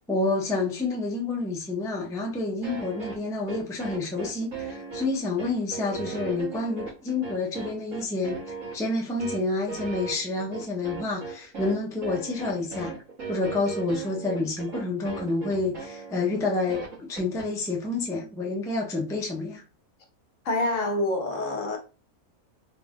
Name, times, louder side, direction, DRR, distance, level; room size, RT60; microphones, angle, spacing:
voice 1, 0.1-12.9 13.3-19.6, left 3 dB, 5° left, 0.5 m, -29 dB
sound 1, 2.6-17.5, right 4 dB, 60° right, 2.1 m, -38 dB
voice 2, 20.4-21.8, left 2 dB, 60° left, 1.3 m, -26 dB
4.0 x 2.5 x 3.5 m
omnidirectional pair, 1.6 m